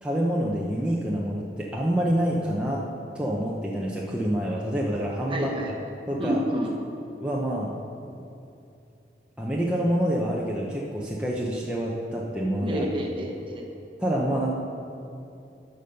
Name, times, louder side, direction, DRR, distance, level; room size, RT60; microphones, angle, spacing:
voice 1, 0.0-2.9 3.1-5.7 6.1-6.4 7.2-7.8 9.4-12.9 14.0-14.5, equal, 5° right, -4 dB, 0.7 m, -27 dB
voice 2, 5.3-5.7 6.2-6.7 12.6-13.7, equal, 30° right, 1 dB, 1.1 m, -29 dB
11.0 x 5.3 x 6.5 m, 2.7 s
head